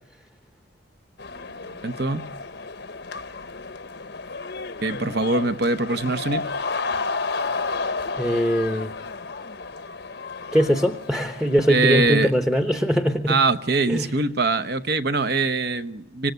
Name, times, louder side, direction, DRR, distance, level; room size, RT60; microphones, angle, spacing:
sound 1, 1.2-12.3, left 4 dB, 55° left, 0.9 m, -32 dB
voice 1, 1.8-2.3 4.8-6.5 11.7-12.3 13.3-16.3, right 3 dB, 50° right, 1.0 m, -23 dB
voice 2, 8.1-8.9 10.5-13.4 13.9-14.1, equal, 5° right, 0.9 m, -21 dB
25.5 x 18.5 x 9.4 m
head